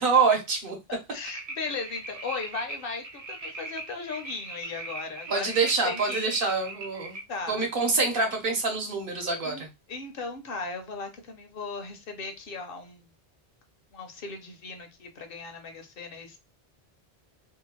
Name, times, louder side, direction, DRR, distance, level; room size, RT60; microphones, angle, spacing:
voice 1, 0.0-0.8 5.3-7.2 7.5-9.7, right 4 dB, 60° right, 1.0 m, -25 dB
voice 2, 0.9-6.3 7.3-7.7 9.4-9.6 9.9-13.0 13.9-16.4, left 4 dB, 65° left, 0.8 m, -37 dB
sound 1, 1.2-7.2, right 3 dB, 45° right, 0.6 m, -40 dB
2.7 x 2.2 x 2.9 m
omnidirectional pair, 1.0 m